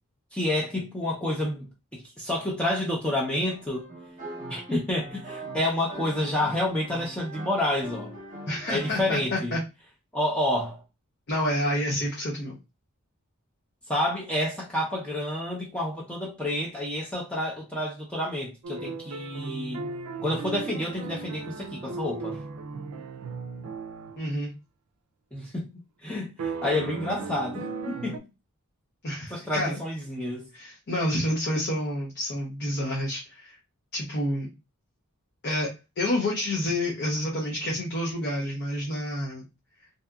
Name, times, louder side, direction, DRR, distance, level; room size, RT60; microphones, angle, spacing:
voice 1, 0.3-1.7 1.9-3.9 4.5-8.1 8.7-9.5 10.1-10.8 13.9-19.8 20.2-22.4 25.3-25.7 26.0-28.2 29.3-30.5, left 1 dB, 5° left, 0.5 m, -29 dB
sound 1, 3.4-9.1, right 1 dB, 35° right, 0.8 m, -42 dB
voice 2, 8.5-9.6 11.3-12.6 24.2-24.5 29.0-29.8 30.5-33.5 33.9-34.5 35.4-39.4, left 1 dB, 50° left, 0.6 m, -29 dB
sound 2, 18.6-24.2 26.4-28.2, right 4 dB, 80° right, 0.4 m, -36 dB
2.7 x 2.3 x 2.2 m
head